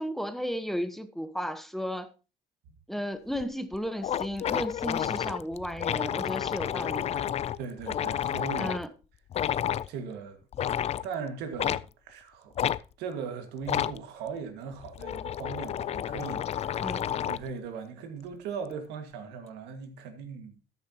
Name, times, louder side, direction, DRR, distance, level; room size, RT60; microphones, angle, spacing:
voice 1, 0.0-2.1 2.9-7.2 8.6-8.9 16.8-17.1, equal, ahead, 1.0 m, -34 dB
sound 1, 3.4-3.5 3.7-3.8 4.0-8.8 9.3-9.9 10.5-11.1 11.6-11.8 12.6-12.8 13.6-14.0 14.7-17.5, left 10 dB, 40° left, 0.4 m, -30 dB
voice 2, 7.6-8.7 9.9-10.4 10.9-12.5 13.0-16.8 17.3-20.5, right 6 dB, 90° right, 1.8 m, -39 dB
13.5 x 9.8 x 2.9 m
cardioid pair, 110°, 17 cm